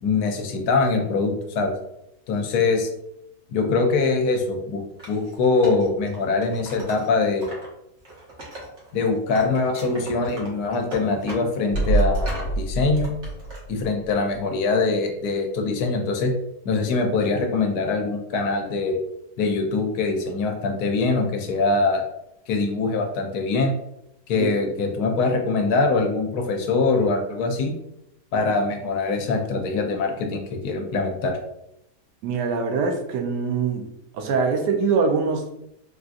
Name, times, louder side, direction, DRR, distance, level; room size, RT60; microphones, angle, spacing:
voice 1, 0.0-1.7 2.3-2.9 3.5-4.8 5.1-7.5 8.9-13.1 13.7-16.3 16.6-19.0 19.4-22.0 22.5-23.7 24.3-27.7 28.3-31.4, left 3 dB, 75° left, 3 dB, 1.0 m, -23 dB
Wood, 5.0-7.7 8.0-9.0 9.3-12.6 12.9-13.6, right 1 dB, 50° right, 1.1 m, -39 dB
sound 1, 11.7-14.4 14.7-14.8, right 2 dB, 55° left, 0.5 m, -26 dB
voice 2, 32.2-33.9 34.1-35.6, right 5 dB, 85° right, 4 dB, 1.2 m, -23 dB
3.6 x 2.6 x 2.4 m, 0.81 s
omnidirectional pair, 1.7 m